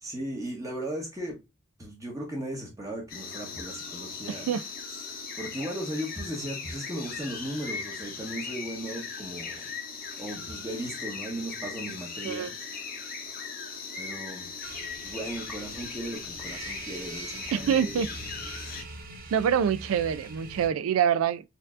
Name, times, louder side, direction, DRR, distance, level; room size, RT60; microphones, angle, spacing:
voice 1, 0.0-1.4 1.8-4.6 5.4-9.7 10.2-12.6 14.0-14.5 15.0-18.1, right 1 dB, 15° right, 0.9 m, -37 dB
sound 1, 3.1-18.8, left 5 dB, 45° left, 0.7 m, -39 dB
voice 2, 4.3-4.6 12.2-12.5 17.5-18.1 19.3-21.4, right 8 dB, 85° right, 0.3 m, -25 dB
sound 2, 14.6-20.7, right 3 dB, 45° right, 0.6 m, -43 dB
4.3 x 2.7 x 2.4 m
head